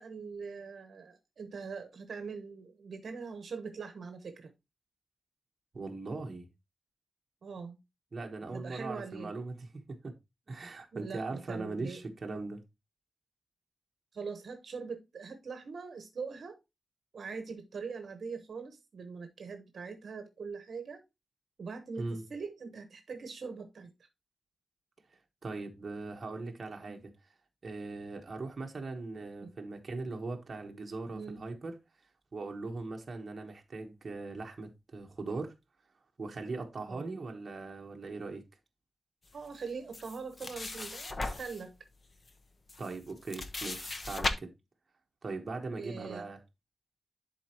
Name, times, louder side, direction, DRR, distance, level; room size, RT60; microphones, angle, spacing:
voice 1, 0.0-4.5 7.4-7.8 8.5-9.3 10.9-12.0 14.1-16.6 17.1-21.0 21.6-23.9 26.9-27.0 29.4-29.5 31.1-31.4 36.9-37.1 39.3-41.7 44.2-44.3 45.8-46.3, right 5 dB, 55° right, 1.0 m, -42 dB
voice 2, 5.7-6.5 8.1-10.1 10.5-12.6 22.0-22.2 25.4-27.1 27.6-31.7 32.3-35.5 36.2-38.4 42.8-44.5 45.2-46.4, right 3 dB, 35° right, 1.2 m, -40 dB
sound 1, 39.9-41.6 42.3-42.4 42.7-44.3, left 2 dB, 30° left, 0.7 m, -37 dB
11.0 x 4.3 x 2.9 m
wide cardioid pair, 180°, 0 cm